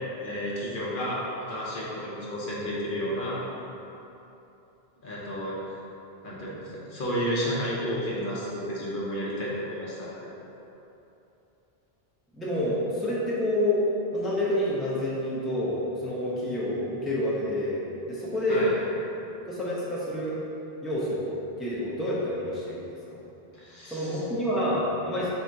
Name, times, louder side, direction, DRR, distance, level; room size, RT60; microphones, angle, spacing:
voice 1, 0.2-1.2 1.5-3.4 5.0-5.6 6.2-6.6 6.9-10.3 18.5-18.7 23.5-24.2 25.1-25.3, equal, 55° left, -7 dB, 1.0 m, -31 dB
voice 2, 12.3-13.8 14.1-18.7 19.5-20.4 20.8-21.3 21.6-22.9 23.9-25.3, left 1 dB, ahead, -8 dB, 0.6 m, -28 dB
3.7 x 2.9 x 4.5 m, 2.9 s
omnidirectional pair, 1.0 m